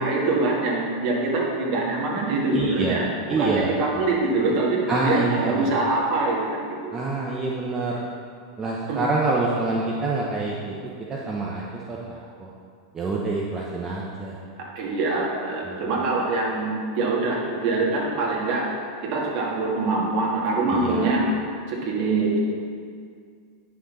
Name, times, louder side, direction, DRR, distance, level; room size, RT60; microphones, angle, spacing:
voice 1, 0.0-6.6 8.9-9.0 14.6-18.7 19.0-21.3 21.7-22.4, right 3 dB, 50° right, -3 dB, 2.3 m, -24 dB
voice 2, 2.5-4.1 4.9-5.7 6.9-8.0 8.6-10.7 11.1-12.5 12.9-14.4 15.6-15.8 20.7-21.1, right 3 dB, 20° right, -3 dB, 1.0 m, -26 dB
9.7 x 6.4 x 4.2 m, 2.2 s
figure-of-eight pair, 90°, 2 cm